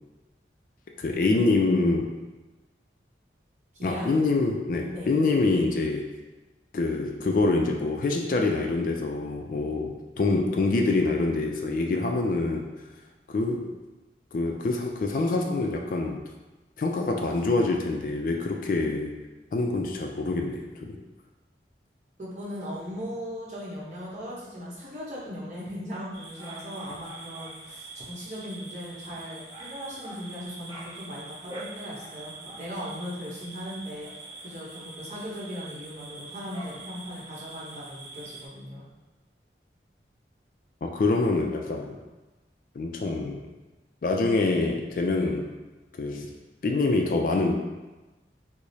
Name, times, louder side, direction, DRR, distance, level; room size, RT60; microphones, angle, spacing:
voice 1, 1.0-2.1 3.8-6.1 6.7-12.6 13.3-13.7 14.3-16.2 16.8-19.1 19.5-21.0 40.8-42.0 42.8-43.4 44.0-45.5 46.0-46.3 46.6-47.6, left 3 dB, 50° left, 2 dB, 0.3 m, -25 dB
voice 2, 22.2-38.9, equal, 40° right, -7 dB, 0.9 m, -38 dB
sound 1, 26.1-38.5, right 2 dB, 20° right, 0.5 m, -44 dB
4.7 x 2.0 x 2.7 m, 1.1 s
head